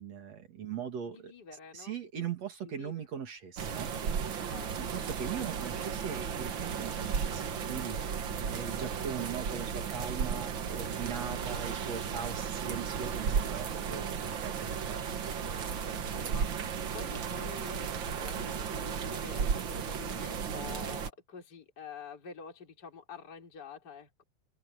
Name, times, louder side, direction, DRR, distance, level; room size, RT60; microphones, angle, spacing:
voice 1, 0.0-1.3 1.7-3.9 4.5-15.1, right 7 dB, 50° right, 2.9 m, -40 dB
voice 2, 1.0-2.0 2.6-3.1 4.5-5.0 5.3-5.5 15.0-24.2, left 6 dB, 25° left, 4.2 m, -48 dB
sound 1, 3.6-21.1, right 7 dB, 70° right, 1.1 m, -34 dB
omnidirectional pair, 4.3 m